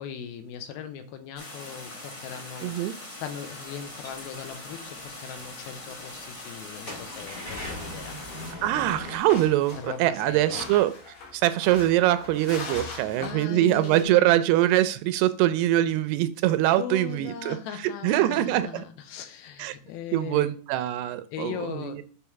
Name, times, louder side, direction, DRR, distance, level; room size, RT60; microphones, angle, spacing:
voice 1, 0.0-8.2 9.7-10.6 12.9-14.5 16.8-20.6 21.3-22.0, left 8 dB, 75° left, 8 dB, 2.5 m, -39 dB
sound 1, 1.4-8.5, left 2 dB, 30° left, 1.6 m, -42 dB
voice 2, 2.6-2.9 8.6-10.9 11.3-17.6 18.0-18.8 19.6-19.7 20.1-22.0, right 14 dB, 85° right, 13 dB, 2.5 m, -23 dB
sound 2, 4.0-4.2 4.9-5.0 5.3-5.4 5.8-5.9 6.7-9.2, left 1 dB, 45° left, 0.7 m, -38 dB
sound 3, 8.7-14.0, left 4 dB, 60° left, 1.6 m, -40 dB
7.2 x 3.3 x 5.7 m, 0.41 s
omnidirectional pair, 4.7 m